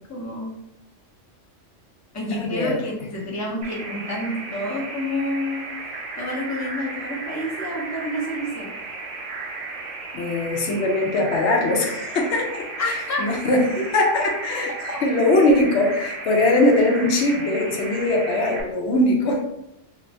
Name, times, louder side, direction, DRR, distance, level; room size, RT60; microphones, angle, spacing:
voice 1, 0.1-0.5 2.1-8.8 12.8-13.2 13.8-14.0 14.9-15.0, left 1 dB, 20° left, -3 dB, 0.5 m, -29 dB
voice 2, 2.4-2.8 10.1-14.7 15.0-19.4, left 2 dB, 70° left, 0 dB, 0.9 m, -21 dB
sound 1, 3.6-18.6, right 3 dB, 70° right, 1.0 m, -34 dB
2.9 x 2.5 x 3.3 m, 0.85 s
omnidirectional pair, 1.3 m